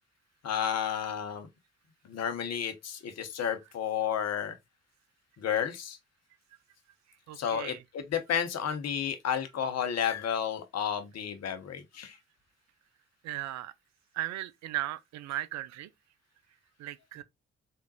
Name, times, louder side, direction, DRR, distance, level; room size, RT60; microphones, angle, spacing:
voice 1, 0.4-1.5 2.1-4.6 5.4-6.0 7.4-12.2, left 8 dB, 55° left, 1.0 m, -32 dB
voice 2, 7.3-7.8 13.2-13.7 14.1-15.9 16.8-17.2, right 14 dB, 65° right, 0.5 m, -36 dB
3.7 x 3.6 x 2.8 m
hypercardioid pair, 45°, 30 cm